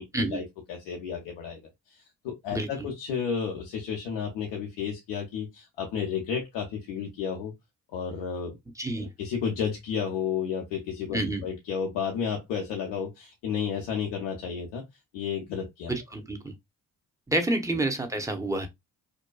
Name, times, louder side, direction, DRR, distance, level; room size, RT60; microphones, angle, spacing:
voice 1, 0.0-1.6 1.9-7.5 7.9-8.6 9.0-14.8 15.1-15.9, left 7 dB, 85° left, 0.6 m, -32 dB
voice 2, 2.5-2.9 8.8-9.1 11.1-11.4 15.9-16.5 17.3-18.7, right 2 dB, 10° right, 0.7 m, -29 dB
2.6 x 2.2 x 2.2 m
hypercardioid pair, 45°, 41 cm